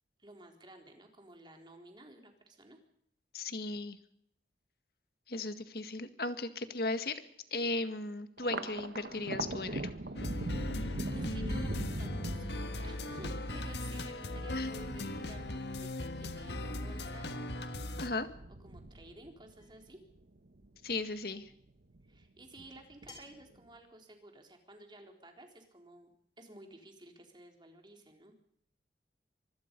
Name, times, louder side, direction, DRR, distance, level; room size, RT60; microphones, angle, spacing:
voice 1, 0.2-2.8 10.9-12.5 12.8-17.3 18.6-20.0 22.1-28.3, right 1 dB, 25° right, 3 dB, 4.0 m, -54 dB
voice 2, 3.3-4.0 5.3-7.2 7.5-9.8 14.5-14.7 18.0-18.3 20.8-21.4, left 3 dB, 60° left, 9 dB, 1.9 m, -36 dB
Thunder, 8.4-21.0 21.4-22.2 22.6-23.4, right 2 dB, 70° right, 1.2 m, -42 dB
sound 1, 10.1-18.1, left 1 dB, 75° left, 1.6 m, -38 dB
sound 2, 19.6-19.9 21.5-21.6 23.1-23.5, left 3 dB, 25° left, 7.4 m, -54 dB
25.5 x 20.5 x 5.4 m, 0.71 s
head